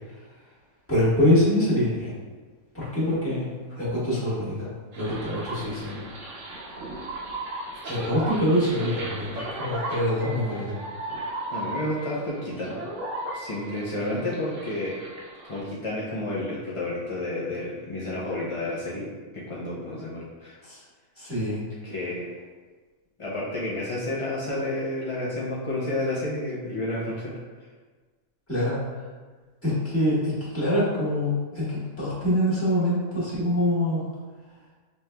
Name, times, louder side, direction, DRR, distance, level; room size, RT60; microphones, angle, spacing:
voice 1, 0.9-2.1 2.7-6.0 7.7-10.7 20.6-20.8 21.2-21.6 28.5-29.0 29.6-34.1, left 1 dB, 10° left, -10 dB, 1.3 m, -25 dB
sound 1, 4.9-15.6, right 1 dB, 65° right, 1.1 m, -36 dB
voice 2, 11.5-12.8 13.3-15.0 15.4-19.1 19.3-20.6 21.8-22.3 23.2-27.3, left 1 dB, 50° left, -7 dB, 0.3 m, -30 dB
5.3 x 3.1 x 2.2 m, 1.4 s
omnidirectional pair, 1.5 m